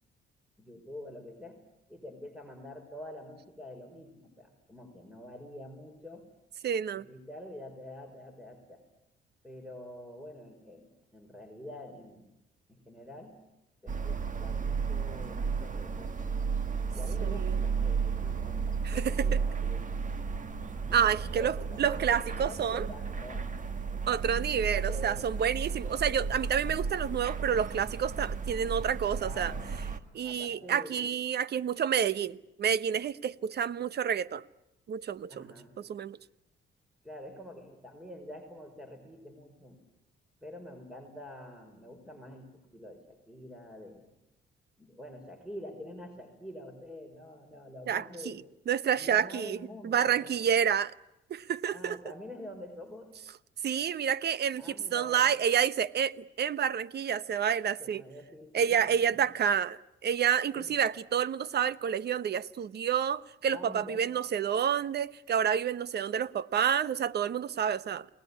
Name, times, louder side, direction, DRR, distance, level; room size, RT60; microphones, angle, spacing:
voice 1, 0.6-1.6 1.9-6.3 6.9-8.8 9.4-12.3 12.7-13.4 13.8-16.2 16.9-20.0 20.8-23.5 24.3-25.3 25.8-26.4 27.4-27.5 29.2-31.1 35.3-35.8 37.0-39.8 40.4-44.1 44.8-48.4 48.9-50.5 51.7-53.2 54.6-55.4 57.8-59.2 60.5-60.8 63.5-64.2, left 1 dB, 5° right, 4.7 m, -47 dB
voice 2, 6.6-7.0 17.2-17.6 18.8-19.3 20.9-22.9 24.1-29.5 30.1-34.4 34.9-35.5 35.8-36.2 47.9-48.4 48.7-49.6 49.8-50.9 51.3-52.0 53.6-58.0 58.5-68.1, right 8 dB, 55° right, 1.0 m, -29 dB
sound 1, 13.9-30.0, right 5 dB, 40° right, 1.9 m, -33 dB
29.5 x 20.0 x 9.7 m
cardioid pair, 90°, 20 cm